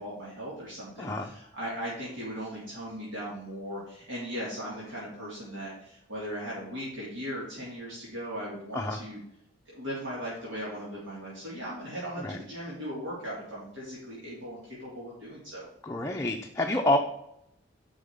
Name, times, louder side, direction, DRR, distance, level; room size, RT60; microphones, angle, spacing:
voice 1, 0.0-9.2 9.7-15.7, equal, 80° right, -7 dB, 3.3 m, -38 dB
voice 2, 1.0-1.3 8.7-9.0 12.2-12.4 15.8-17.0, left 1 dB, 15° left, 1 dB, 0.6 m, -28 dB
6.2 x 5.2 x 6.5 m, 0.78 s
head